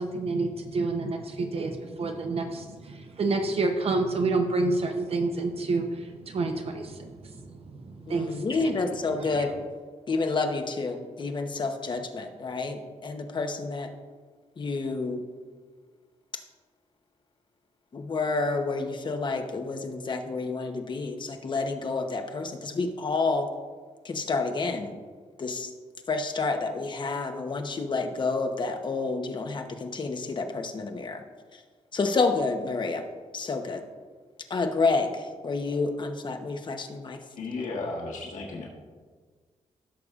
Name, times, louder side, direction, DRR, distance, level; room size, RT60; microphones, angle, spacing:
voice 1, 0.0-8.7, right 3 dB, 50° right, 4 dB, 0.8 m, -29 dB
voice 2, 8.1-9.5 10.1-13.9 14.6-15.2 17.9-23.5 24.0-25.0 25.4-25.7 26.1-31.2 31.5-31.6 31.9-33.0 33.3-33.8 34.5-37.2, left 3 dB, 40° left, 5 dB, 0.8 m, -29 dB
voice 3, 37.3-38.7, left 3 dB, 85° left, -3 dB, 1.5 m, -34 dB
16.0 x 6.7 x 2.4 m, 1.5 s
wide cardioid pair, 150°, 13 cm